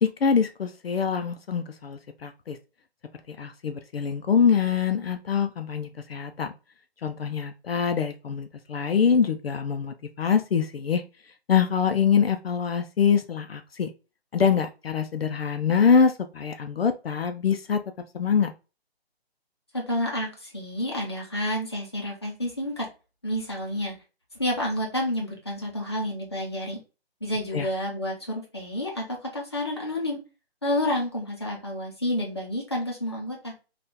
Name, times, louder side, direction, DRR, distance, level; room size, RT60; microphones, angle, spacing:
voice 1, 0.0-2.6 3.3-6.5 7.0-11.0 11.5-13.9 14.3-17.8 18.1-18.5 27.5-27.7, left 6 dB, 65° left, 7 dB, 0.5 m, -24 dB
voice 2, 19.7-22.9 23.2-23.9 24.4-26.8 27.2-30.2 30.6-33.5, left 1 dB, 25° left, -2 dB, 0.6 m, -29 dB
2.7 x 2.4 x 3.5 m, 0.31 s
hypercardioid pair, 180°, 32 cm